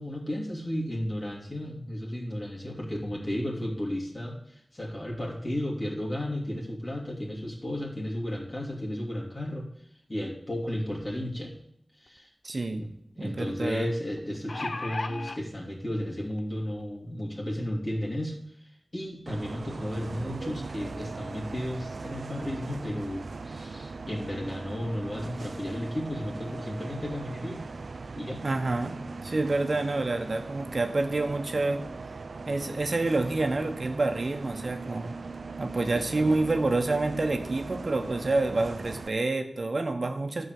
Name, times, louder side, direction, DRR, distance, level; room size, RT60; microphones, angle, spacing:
voice 1, 0.0-9.7 10.1-11.5 12.0-12.3 12.7-12.9 13.2-27.7 28.1-28.4 35.7-36.4, left 1 dB, 35° left, -3 dB, 2.8 m, -34 dB
sound 1, 12.1-12.2 12.5-12.6 14.2-15.4 16.3-16.4 16.8-16.9, left 3 dB, 60° left, 0.6 m, -34 dB
voice 2, 12.4-12.8 13.2-13.9 28.4-29.0 29.2-31.8 32.5-35.1 35.6-40.5, right 2 dB, 60° right, 6 dB, 1.3 m, -28 dB
Bus, 19.3-39.1, right 3 dB, 75° right, 0.4 m, -39 dB
12.0 x 5.3 x 7.8 m, 0.70 s
wide cardioid pair, 65°, 0 cm